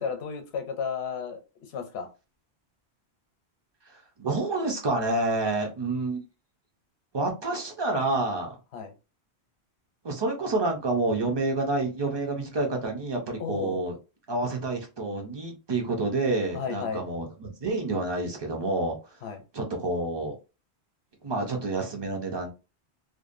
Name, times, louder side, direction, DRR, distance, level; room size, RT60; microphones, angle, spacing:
voice 1, 0.0-1.4 1.7-2.1 8.7-8.9 13.4-13.9 16.5-17.0 19.2-19.4, left 6 dB, 75° left, 0.9 m, -33 dB
voice 2, 3.8-6.2 7.1-8.6 10.0-14.0 14.3-19.0 19.5-20.3 21.2-22.5, right 2 dB, 35° right, 0.5 m, -28 dB
2.5 x 2.1 x 2.5 m
omnidirectional pair, 1.1 m